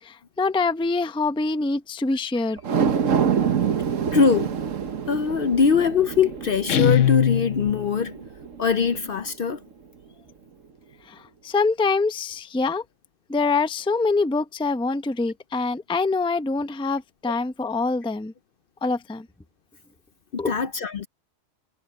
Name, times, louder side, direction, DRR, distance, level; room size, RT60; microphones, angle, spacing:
voice 1, 0.0-2.6 11.1-12.8 13.3-18.3 18.8-19.3 20.4-20.5, left 3 dB, 5° left, 0.5 m, -25 dB
sound 1, 2.6-9.1 9.5-9.6, right 7 dB, 80° right, 1.5 m, -26 dB
voice 2, 4.1-4.5 5.1-8.2 8.6-9.6 20.3-21.1, left 5 dB, 55° left, 0.8 m, -22 dB
Guitar, 6.7-8.0, left 11 dB, 70° left, 1.1 m, -21 dB
omnidirectional pair, 1.3 m